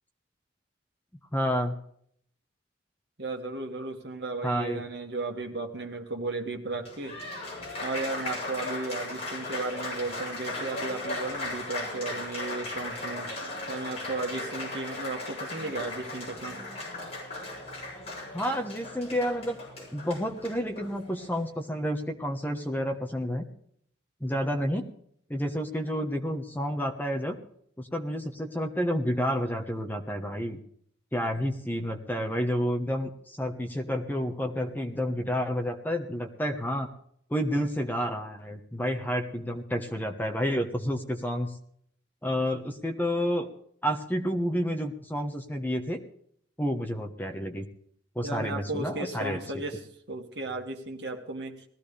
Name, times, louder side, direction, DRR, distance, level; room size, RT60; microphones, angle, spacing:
voice 1, 1.3-1.7 4.4-4.8 18.3-23.5 24.2-24.9 25.3-27.4 27.8-30.6 31.1-36.9 37.3-41.5 42.2-43.5 43.8-46.0 46.6-47.7 48.1-49.4, equal, 10° left, 5 dB, 1.2 m, -30 dB
voice 2, 3.2-7.2 7.8-13.3 13.7-16.6 48.2-51.6, right 3 dB, 60° right, 3 dB, 2.0 m, -35 dB
Applause, 6.7-21.4, left 2 dB, 35° left, 7.8 m, -37 dB
20.0 x 15.0 x 3.4 m, 0.65 s
head